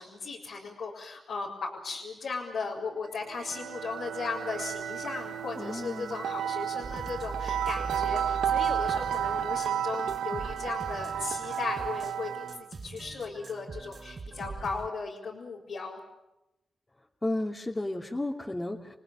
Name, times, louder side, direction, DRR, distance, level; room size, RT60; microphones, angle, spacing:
voice 1, 0.0-16.0, left 4 dB, 85° left, -5 dB, 4.3 m, -37 dB
sound 1, 3.2-12.7, right 9 dB, 90° right, 0.9 m, -32 dB
voice 2, 5.5-6.2 17.2-18.9, left 1 dB, 25° left, -3 dB, 2.9 m, -33 dB
sound 2, 6.8-14.9, right 4 dB, 55° right, 1.2 m, -42 dB
30.0 x 19.0 x 8.8 m, 0.93 s
supercardioid pair, 45°, 0 cm